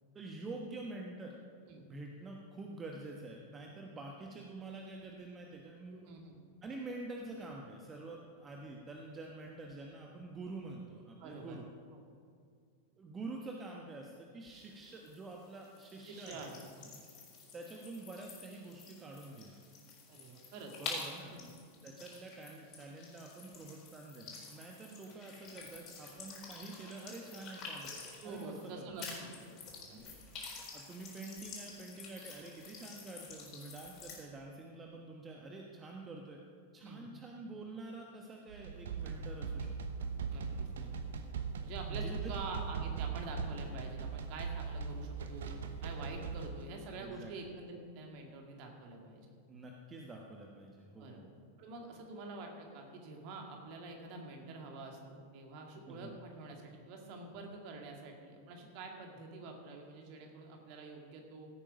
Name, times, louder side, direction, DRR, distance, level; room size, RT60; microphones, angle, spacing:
voice 1, 0.1-1.4 1.8-6.2 6.6-11.6 13.0-16.5 17.5-19.6 20.8-21.3 21.8-27.9 28.2-29.1 30.7-36.4 36.7-39.8 41.9-42.3 47.0-47.5 49.5-51.3 55.9-56.1, right 2 dB, 20° right, 0 dB, 1.2 m, -47 dB
voice 2, 5.9-6.4 11.2-11.6 11.9-12.0 16.1-16.9 20.1-21.5 28.2-29.5 29.9-30.2 36.8-37.1 40.3-40.9 41.6-45.5 45.8-49.2 51.0-51.2 51.6-61.5, right 3 dB, 45° right, 2 dB, 2.2 m, -47 dB
sound 1, 14.5-28.7 29.0-34.2, left 4 dB, 35° left, 4.1 m, -49 dB
sound 2, 38.5-46.7, right 5 dB, 60° right, 0.9 m, -39 dB
16.0 x 8.8 x 5.2 m, 2.2 s
figure-of-eight pair, 90°, 0 cm